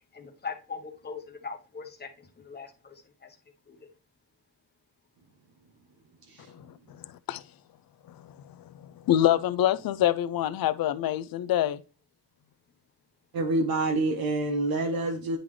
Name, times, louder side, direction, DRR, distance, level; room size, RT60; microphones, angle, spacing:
voice 1, 0.1-3.3 3.7-3.8, left 5 dB, 25° left, 0.9 m, -41 dB
voice 2, 6.2-6.5 13.3-15.4, right 2 dB, 60° right, 0.9 m, -27 dB
voice 3, 9.1-11.8, left 12 dB, 60° left, 0.5 m, -25 dB
9.8 x 3.8 x 3.2 m
wide cardioid pair, 170°, 41 cm